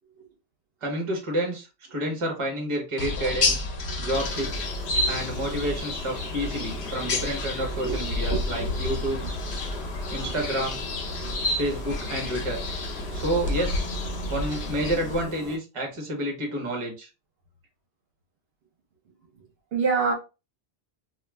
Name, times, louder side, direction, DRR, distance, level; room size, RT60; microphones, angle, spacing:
voice 1, 0.8-3.7 4.0-4.7 5.1-9.2 10.1-10.8 11.6-12.6 13.1-13.9 14.3-17.1, right 1 dB, 30° right, 1 dB, 0.9 m, -29 dB
sound 1, 3.0-15.2, left 2 dB, 75° left, 0.9 m, -30 dB
sound 2, 4.1-15.6, left 1 dB, ahead, 1.0 m, -42 dB
voice 2, 4.8-5.4 7.1-7.2 7.7-8.9 10.2-10.4 19.3-19.4 19.7-20.1, right 5 dB, 65° right, 1 dB, 0.9 m, -30 dB
2.3 x 2.3 x 3.1 m, 0.30 s
omnidirectional pair, 1.1 m